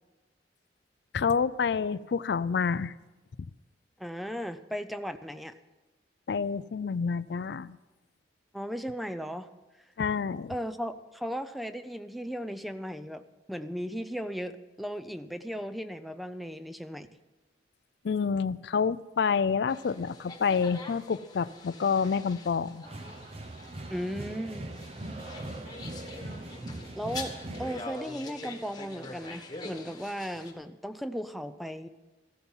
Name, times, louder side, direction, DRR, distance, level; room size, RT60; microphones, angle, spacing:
voice 1, 1.1-2.9 6.3-7.8 10.0-10.5 18.0-22.8, left 6 dB, 65° left, 17 dB, 0.4 m, -28 dB
voice 2, 4.0-5.6 8.5-9.5 10.5-17.1 23.9-24.7 27.0-31.9, equal, ahead, 11 dB, 0.5 m, -36 dB
sound 1, 19.7-30.5, left 3 dB, 20° left, 1.5 m, -45 dB
sound 2, 22.9-27.8, right 1 dB, 35° right, 0.8 m, -40 dB
14.5 x 13.0 x 5.5 m, 1.1 s
head